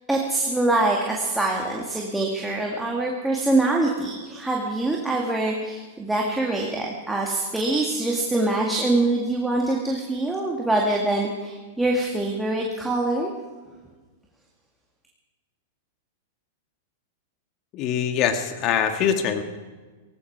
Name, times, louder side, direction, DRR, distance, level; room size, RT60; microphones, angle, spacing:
voice 1, 0.1-13.3, right 2 dB, 5° right, -2 dB, 2.1 m, -24 dB
voice 2, 17.7-19.4, left 8 dB, 40° left, 7 dB, 1.8 m, -23 dB
18.0 x 16.5 x 4.7 m, 1.3 s
hypercardioid pair, 115°, 0 cm